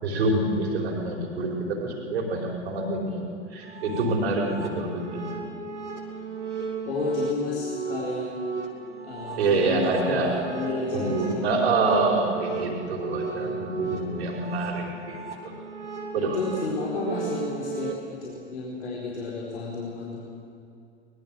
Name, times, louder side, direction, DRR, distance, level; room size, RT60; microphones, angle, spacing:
voice 1, 0.0-3.2 3.5-5.3 9.4-10.3 10.9-15.5 16.1-16.4, right 3 dB, 60° right, 0 dB, 4.7 m, -26 dB
sound 1, 3.6-18.0, right 5 dB, 85° right, 2.8 m, -35 dB
voice 2, 6.9-8.6 9.0-11.7 13.3-14.2 16.1-20.2, left 3 dB, 70° left, -5 dB, 4.3 m, -32 dB
23.0 x 21.0 x 7.4 m, 2.5 s
figure-of-eight pair, 90°, 35 cm